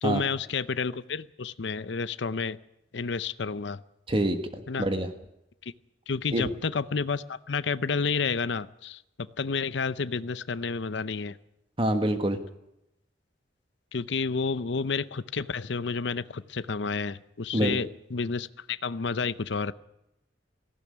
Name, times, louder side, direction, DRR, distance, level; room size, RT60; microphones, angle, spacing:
voice 1, 0.0-2.6 2.9-3.8 4.7-4.9 6.1-9.0 9.4-11.4 13.9-19.7, left 4 dB, 65° left, 15 dB, 0.7 m, -30 dB
voice 2, 4.1-4.4 4.8-5.1 6.3-6.5 11.8-12.4 17.5-17.8, right 1 dB, 30° right, 7 dB, 1.4 m, -25 dB
18.5 x 15.5 x 9.7 m, 0.85 s
head